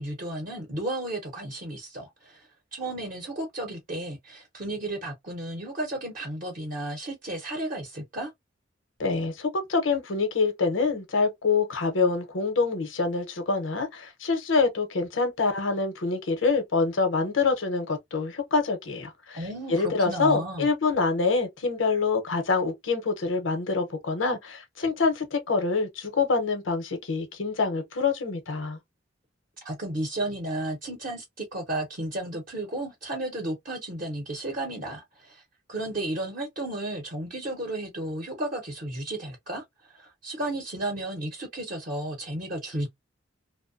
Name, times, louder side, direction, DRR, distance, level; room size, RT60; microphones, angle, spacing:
voice 1, 0.0-2.5 2.7-8.3 19.3-20.7 29.6-35.4 35.7-39.6 39.9-42.9, right 1 dB, 45° right, 0.7 m, -33 dB
voice 2, 9.0-28.8, left 4 dB, 85° left, 0.8 m, -26 dB
2.6 x 2.1 x 2.5 m
head